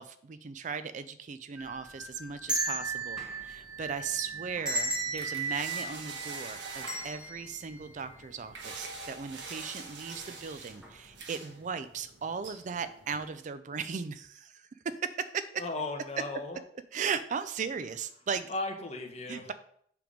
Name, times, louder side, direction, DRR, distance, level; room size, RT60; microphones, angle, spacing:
voice 1, 0.0-15.4 16.9-18.5 19.3-19.5, right 6 dB, 45° right, 12 dB, 0.4 m, -37 dB
sound 1, 1.6-8.7 9.1-9.2 10.1-10.4 10.8-10.9, right 3 dB, 5° right, 1.4 m, -36 dB
sound 2, 2.8-13.3, right 4 dB, 80° right, 1.2 m, -46 dB
voice 2, 15.6-16.6 18.5-19.5, left 2 dB, 35° left, 2 dB, 1.2 m, -36 dB
7.6 x 3.5 x 5.1 m, 0.63 s
head